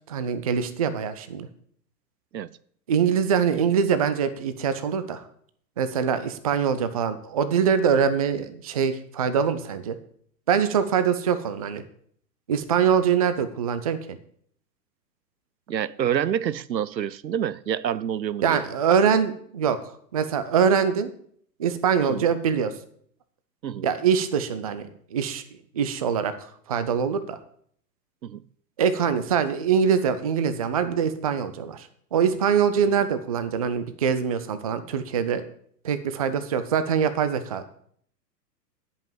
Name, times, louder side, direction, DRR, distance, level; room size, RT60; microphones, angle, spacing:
voice 1, 0.1-1.5 2.9-5.2 5.8-10.0 10.5-11.8 12.5-14.0 18.4-19.8 20.1-21.1 21.6-22.7 23.8-25.4 25.7-27.4 28.8-35.4 35.8-37.6, right 7 dB, 25° right, 0.4 m, -23 dB
voice 2, 15.7-18.6 22.0-22.3 23.6-23.9 28.2-28.4, right 9 dB, 85° right, 0.6 m, -27 dB
10.5 x 5.5 x 7.2 m
figure-of-eight pair, 110°, 50 cm